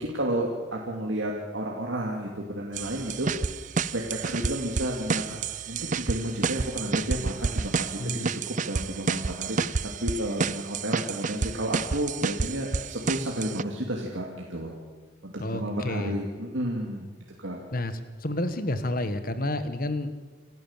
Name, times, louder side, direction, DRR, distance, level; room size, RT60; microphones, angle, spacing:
voice 1, 0.0-3.3 3.9-5.4 5.7-14.7 15.2-17.1 17.4-17.6, right 1 dB, 80° right, -1 dB, 2.6 m, -32 dB
sound 1, 2.8-13.6, right 5 dB, 40° right, 0.5 m, -30 dB
voice 2, 8.0-8.3 15.4-16.1 17.7-17.9 18.2-20.2, left 1 dB, 45° left, 11 dB, 1.5 m, -30 dB
27.0 x 14.0 x 7.4 m, 1.3 s
head